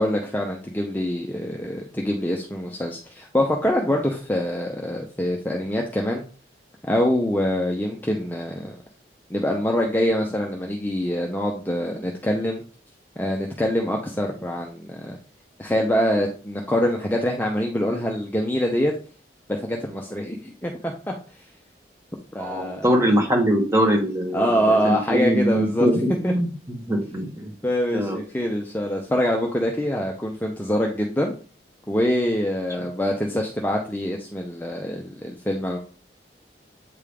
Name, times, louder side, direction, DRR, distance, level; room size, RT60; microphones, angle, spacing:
voice 1, 0.0-6.2 6.9-8.8 9.3-12.6 13.2-15.2 15.6-18.9 19.5-21.4 22.3-22.9 24.3-26.3 27.6-31.3 31.9-35.8, equal, 10° left, 0 dB, 0.6 m, -25 dB
voice 2, 22.4-26.5 26.9-27.5 27.9-28.2, equal, 15° right, 0 dB, 1.3 m, -22 dB
8.3 x 3.5 x 3.4 m, 0.39 s
head